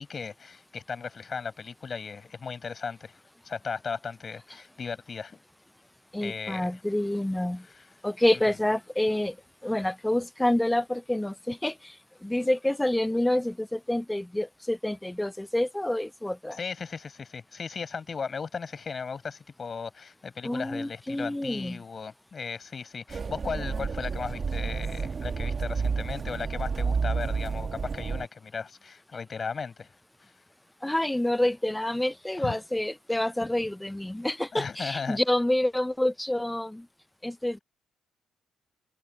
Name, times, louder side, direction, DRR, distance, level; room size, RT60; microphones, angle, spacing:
voice 1, 0.0-3.2 3.4-5.4 6.2-6.7 7.6-7.9 16.5-29.9 30.2-30.3 32.4-32.6 34.5-35.2, left 5 dB, 40° left, 7.4 m, -36 dB
voice 2, 6.1-7.7 8.0-9.4 9.6-12.0 12.2-16.6 20.4-21.8 30.8-36.9 37.2-37.6, left 1 dB, 10° left, 0.6 m, -28 dB
sound 1, 23.1-28.3, right 5 dB, 40° right, 1.4 m, -30 dB
cardioid pair, 90°, 0 cm